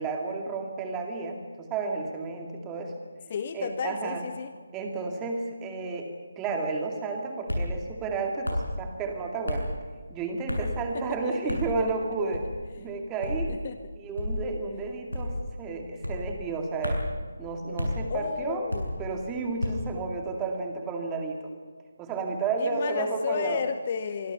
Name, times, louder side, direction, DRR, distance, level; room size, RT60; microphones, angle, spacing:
voice 1, 0.0-2.9 3.5-4.3 4.7-9.7 10.1-12.5 12.8-13.6 14.0-17.0 17.4-18.6 19.0-21.5 22.0-23.6, right 4 dB, 10° right, 2 dB, 2.4 m, -32 dB
voice 2, 3.3-4.5 10.9-11.2 13.5-13.8 18.1-19.1 22.6-24.3, left 6 dB, 30° left, 10 dB, 0.9 m, -32 dB
sound 1, 7.5-7.7 8.4-8.7 9.5-9.7 10.5-10.8 11.5-11.7 12.3-12.6 13.2-13.5 14.2-14.4 15.1-15.4 16.0-16.3 16.8-17.1 17.8-18.0 18.7-19.0 19.6-19.9, left 1 dB, 80° left, 8.0 m, -30 dB
25.0 x 24.5 x 5.8 m, 1.5 s
figure-of-eight pair, 150°, 0 cm